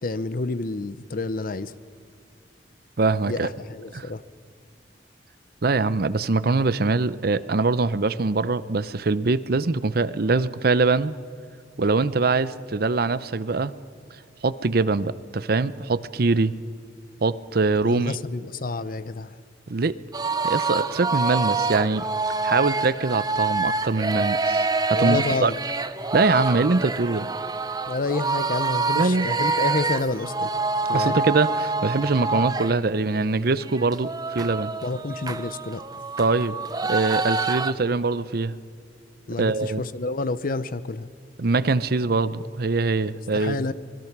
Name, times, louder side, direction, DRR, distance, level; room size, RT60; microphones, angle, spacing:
voice 1, 0.0-1.7 3.3-4.2 17.8-19.3 24.9-25.6 27.9-30.5 30.9-31.2 34.8-35.8 39.3-41.1 43.3-43.7, left 3 dB, 50° left, 16 dB, 0.7 m, -29 dB
voice 2, 3.0-3.5 3.9-4.1 5.6-11.1 11.8-13.7 14.4-16.5 17.2-18.2 19.7-20.0 20.4-22.0 22.4-25.5 26.1-27.3 28.9-29.3 30.9-34.7 36.2-36.6 36.9-38.5 39.4-39.8 41.4-43.6, right 3 dB, 55° right, 16 dB, 0.7 m, -23 dB
sound 1, 20.1-32.8 33.2-33.3 33.6-37.7, right 3 dB, 20° right, 0.7 m, -26 dB
25.5 x 21.0 x 6.0 m, 2.3 s
head